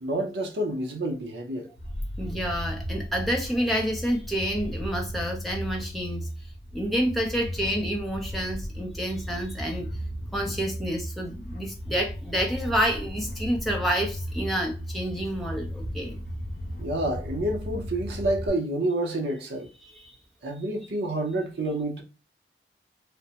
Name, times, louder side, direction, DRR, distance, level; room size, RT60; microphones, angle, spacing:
voice 1, 0.0-1.7 16.8-19.7 20.4-22.0, right 1 dB, 70° right, 0.6 m, -28 dB
sound 1, 1.8-18.5, equal, 50° left, 0.5 m, -35 dB
voice 2, 2.2-6.3 6.7-9.9 10.3-16.2 19.8-20.2, equal, ahead, 0.5 m, -29 dB
3.3 x 2.0 x 2.8 m
head